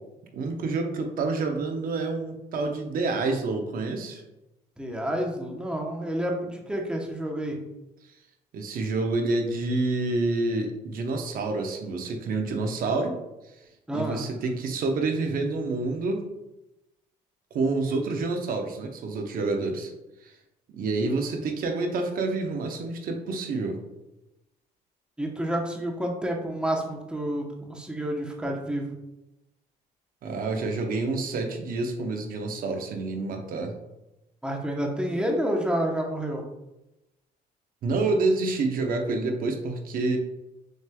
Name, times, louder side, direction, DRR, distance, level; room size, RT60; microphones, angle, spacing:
voice 1, 0.3-4.2 8.5-13.2 13.9-16.2 17.5-19.9 20.2-20.3 20.7-23.8 30.2-33.8 37.8-40.2, right 3 dB, 60° right, 4 dB, 0.8 m, -28 dB
voice 2, 4.8-7.6 13.9-14.2 21.0-21.2 25.2-28.9 34.4-36.4, right 1 dB, 5° right, 1 dB, 0.8 m, -29 dB
6.4 x 3.2 x 2.2 m, 0.94 s
cardioid pair, 110°, 17 cm